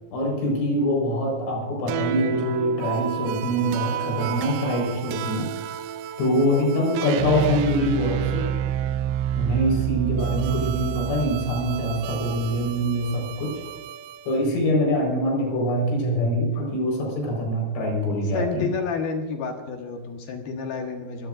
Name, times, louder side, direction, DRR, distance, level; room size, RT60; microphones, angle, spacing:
voice 1, 0.1-5.5 6.2-8.5 9.4-13.5 14.3-18.7, equal, 85° left, 0 dB, 6.9 m, -24 dB
sound 1, 1.9-14.4, right 10 dB, 85° right, 2.9 m, -29 dB
voice 2, 18.3-21.3, left 5 dB, 65° left, 3 dB, 2.8 m, -30 dB
26.0 x 16.0 x 2.5 m, 1.3 s
omnidirectional pair, 5.3 m